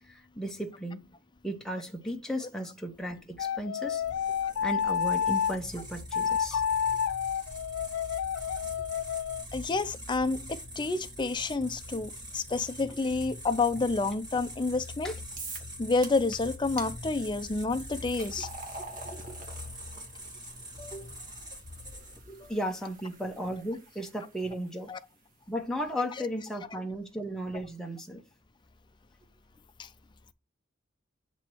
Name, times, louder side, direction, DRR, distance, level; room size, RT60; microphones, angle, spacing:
voice 1, 0.1-1.1 1.4-4.0 4.6-6.6 15.0-15.2 19.0-19.4 22.3-24.9 25.5-28.2, equal, 5° left, 0.9 m, -35 dB
sound 1, 3.4-5.6 6.1-9.4, left 8 dB, 90° left, 0.3 m, -30 dB
sound 2, 4.0-22.4, equal, 20° right, 1.7 m, -44 dB
voice 2, 9.5-15.1 15.8-18.5 20.8-21.1 22.3-22.5 24.9-25.0 26.7-26.8 29.8-29.9, left 3 dB, 25° left, 0.4 m, -29 dB
sound 3, 15.4-15.7 16.0-16.4 16.8-16.9 17.6-24.7, right 3 dB, 40° right, 1.3 m, -46 dB
8.9 x 3.0 x 4.5 m
head